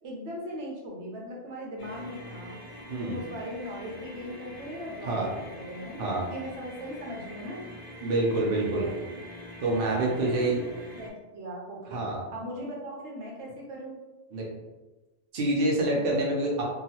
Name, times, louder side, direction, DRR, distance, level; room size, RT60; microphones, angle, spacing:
voice 1, 0.0-2.6 3.0-7.6 8.6-8.9 9.8-14.0 15.9-16.2, equal, 85° right, -2 dB, 1.0 m, -39 dB
sound 1, 1.8-11.1, left 1 dB, 40° left, 0.5 m, -45 dB
voice 2, 8.0-8.9 9.6-10.6 11.9-12.2 14.3-14.4 15.3-16.6, right 2 dB, 60° right, -3 dB, 0.8 m, -26 dB
2.8 x 2.3 x 2.8 m, 1.2 s
omnidirectional pair, 1.2 m